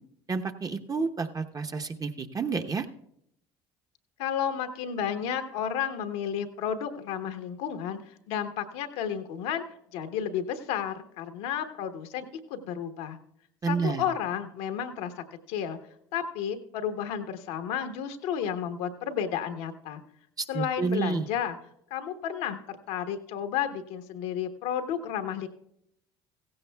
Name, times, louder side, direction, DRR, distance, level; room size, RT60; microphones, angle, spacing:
voice 1, 0.3-2.9 13.6-14.0 20.4-21.3, right 4 dB, 25° right, 6 dB, 0.9 m, -30 dB
voice 2, 4.2-9.6 9.9-13.2 13.7-15.8 16.1-20.0 20.5-21.6 21.9-25.5, left 8 dB, 75° left, 7 dB, 1.0 m, -32 dB
16.0 x 15.5 x 2.3 m, 0.76 s
hypercardioid pair, 70°, 14 cm